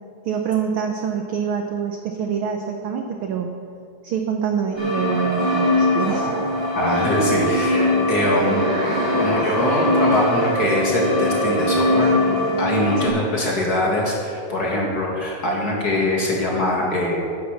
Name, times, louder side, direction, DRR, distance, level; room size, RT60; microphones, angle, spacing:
voice 1, 0.2-3.5 4.0-6.3 13.1-13.2, right 7 dB, 80° right, 4 dB, 1.1 m, -25 dB
sound 1, 4.8-13.1, left 1 dB, 10° right, 2.9 m, -21 dB
voice 2, 6.7-8.7 9.2-12.2 12.6-17.2, left 1 dB, 35° left, -2 dB, 2.1 m, -22 dB
10.0 x 9.7 x 7.2 m, 2.3 s
omnidirectional pair, 3.4 m